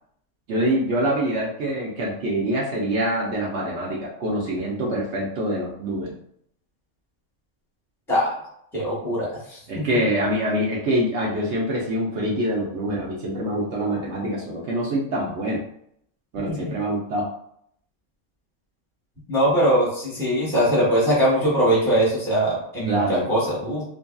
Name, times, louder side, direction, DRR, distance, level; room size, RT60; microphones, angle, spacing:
voice 1, 0.5-6.1 9.7-15.6 16.3-17.3 22.8-23.3, right 1 dB, 65° right, -4 dB, 0.8 m, -25 dB
voice 2, 8.7-9.3 9.7-9.8 16.5-16.7 19.3-23.0 23.3-23.8, equal, ahead, -6 dB, 0.9 m, -21 dB
2.7 x 2.6 x 2.2 m, 0.69 s
omnidirectional pair, 1.5 m